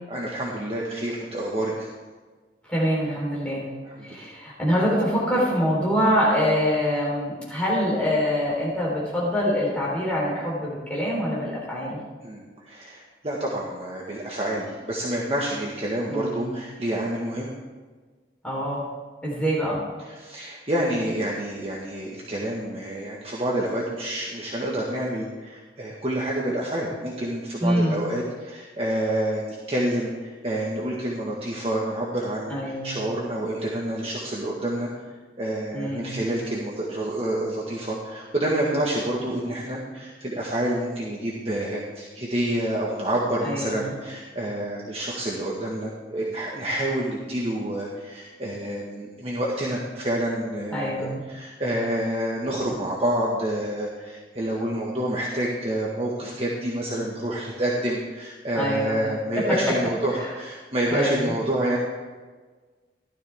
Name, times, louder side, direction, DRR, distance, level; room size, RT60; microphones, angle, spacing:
voice 1, 0.1-1.9 3.8-4.3 12.2-17.5 20.0-34.9 35.4-61.8, right 1 dB, 35° right, -4 dB, 1.7 m, -28 dB
voice 2, 2.7-3.7 4.0-12.0 16.1-16.5 18.4-18.8 19.2-19.8 27.6-28.0 32.5-32.9 35.7-36.2 43.4-43.9 50.7-51.2 58.5-59.0 59.4-59.5 60.2-60.3 60.9-61.3, equal, 5° left, -6 dB, 4.0 m, -25 dB
16.0 x 12.5 x 3.6 m, 1.4 s
head